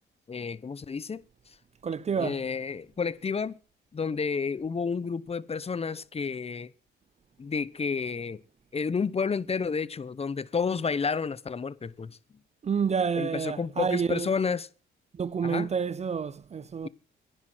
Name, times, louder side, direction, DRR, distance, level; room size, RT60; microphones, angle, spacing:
voice 1, 0.3-1.2 2.2-3.5 3.9-6.7 7.4-8.4 8.7-12.2 13.2-14.7 15.4-15.7, left 5 dB, 30° left, 1.0 m, -30 dB
voice 2, 1.8-2.5 12.6-14.3 15.1-16.9, right 6 dB, 35° right, 0.6 m, -29 dB
10.5 x 10.0 x 6.2 m
cardioid pair, 90°, 20 cm